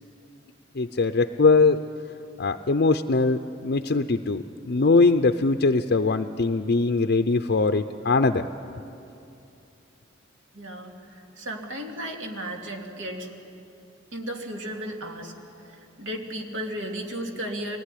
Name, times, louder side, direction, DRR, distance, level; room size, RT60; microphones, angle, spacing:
voice 1, 0.7-1.8 2.4-8.5, left 3 dB, 55° left, 8 dB, 0.6 m, -21 dB
voice 2, 10.5-13.3 14.1-15.3 15.6-17.8, right 1 dB, 75° right, 2 dB, 2.7 m, -34 dB
23.5 x 18.0 x 10.0 m, 2.7 s
head